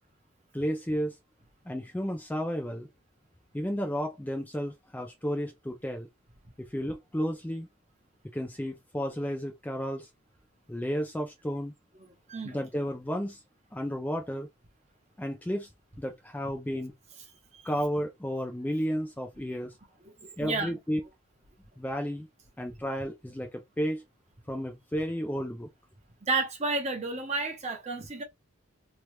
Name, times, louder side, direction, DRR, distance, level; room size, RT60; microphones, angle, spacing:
voice 1, 0.5-1.2 1.7-2.9 3.5-6.1 6.6-7.7 8.3-10.1 10.7-11.7 12.4-13.4 13.7-14.5 15.2-15.7 16.0-16.9 17.6-19.8 20.4-21.0 21.8-22.3 22.6-24.0 24.5-25.7, equal, 10° left, 0.4 m, -32 dB
voice 2, 20.0-20.7 26.2-28.2, right 3 dB, 30° right, 0.8 m, -31 dB
3.0 x 2.3 x 3.1 m
head